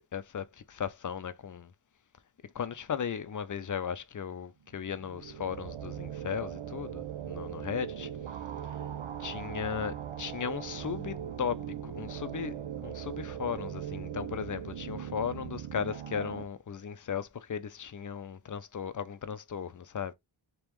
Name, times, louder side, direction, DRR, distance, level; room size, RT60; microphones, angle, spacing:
voice 1, 0.1-1.7 2.5-8.1 8.6-8.8 9.2-20.1, left 7 dB, 45° left, 0.4 m, -36 dB
sound 1, 4.9-16.4, right 9 dB, 80° right, 0.6 m, -39 dB
3.4 x 2.9 x 3.1 m
wide cardioid pair, 85°, 46 cm